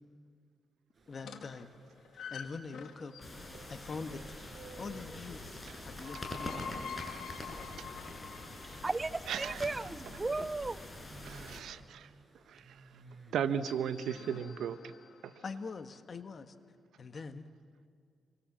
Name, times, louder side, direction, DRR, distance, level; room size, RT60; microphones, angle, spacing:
sound 1, 0.9-14.3, right 3 dB, 45° right, 6.0 m, -58 dB
voice 1, 1.1-1.7 2.1-3.1 3.7-4.2 4.8-5.5 5.8-7.1 10.4-10.5 15.4-16.5 17.0-17.5, left 4 dB, 50° left, 1.6 m, -44 dB
sound 2, 1.2-3.5 5.7-9.8 13.4-15.6, left 6 dB, 85° left, 2.2 m, -47 dB
sound 3, 3.2-11.6, left 1 dB, 25° left, 7.0 m, -45 dB
voice 2, 8.6-10.8, right 3 dB, 25° right, 0.6 m, -35 dB
voice 3, 9.3-9.6 11.2-12.1 12.5-12.6 13.3-14.9, right 8 dB, 90° right, 1.0 m, -35 dB
28.5 x 24.0 x 7.5 m
cardioid pair, 80°, 0 cm